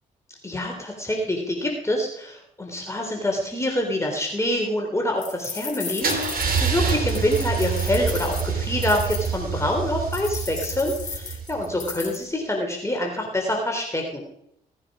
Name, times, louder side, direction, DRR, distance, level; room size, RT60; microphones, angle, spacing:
voice 1, 0.4-14.2, left 1 dB, 15° left, 1 dB, 3.5 m, -26 dB
sound 1, 5.2-9.3 10.1-12.2, left 5 dB, 45° left, 4.4 m, -35 dB
Car / Engine starting / Idling, 6.0-11.9, right 6 dB, 60° right, 3.5 m, -27 dB
17.5 x 9.9 x 5.0 m, 0.75 s
supercardioid pair, 55°, 17 cm